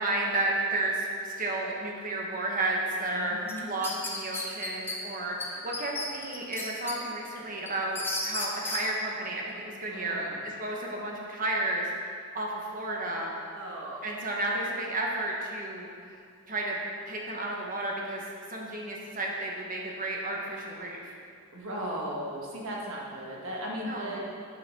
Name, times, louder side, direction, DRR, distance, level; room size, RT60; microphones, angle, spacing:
voice 1, 0.0-3.4 3.7-13.3 14.0-15.9 16.5-16.8 17.1-18.2 18.5-21.1 23.9-24.1, right 2 dB, 40° right, -2 dB, 1.1 m, -32 dB
voice 2, 3.1-3.7 9.9-10.4 13.5-14.1 21.5-24.2, equal, 65° right, -3 dB, 1.4 m, -37 dB
sound 1, 3.5-5.0 5.4-5.5 5.7-7.0 7.4-8.8, left 2 dB, 10° left, 0.7 m, -33 dB
8.1 x 5.7 x 4.2 m, 2.3 s
head